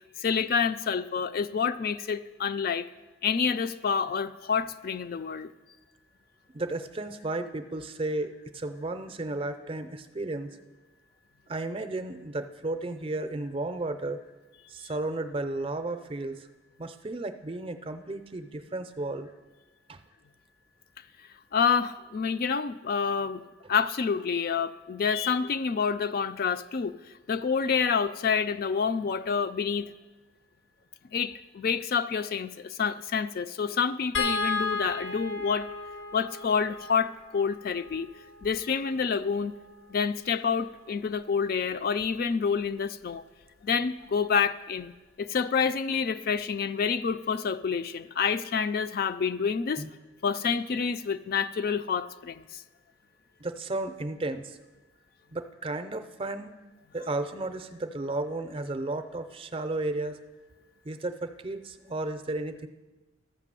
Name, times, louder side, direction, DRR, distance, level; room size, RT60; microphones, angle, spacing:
voice 1, 0.2-2.9 3.2-5.5 21.5-23.4 23.7-26.9 27.3-29.9 31.1-35.7 36.1-38.1 38.4-39.5 39.9-43.2 43.6-44.9 45.2-49.9 50.2-52.6, left 6 dB, 50° left, 11 dB, 0.4 m, -28 dB
voice 2, 6.5-10.5 11.5-14.2 14.7-16.5 16.8-19.3 19.9-20.0 49.8-49.9 53.4-54.6 55.3-56.5 56.9-60.2 60.8-62.7, right 2 dB, 30° right, 9 dB, 0.5 m, -33 dB
sound 1, 34.1-40.5 42.0-42.2 42.5-42.7, left 4 dB, 75° left, 0.9 m, -35 dB
13.0 x 5.9 x 7.5 m, 1.2 s
head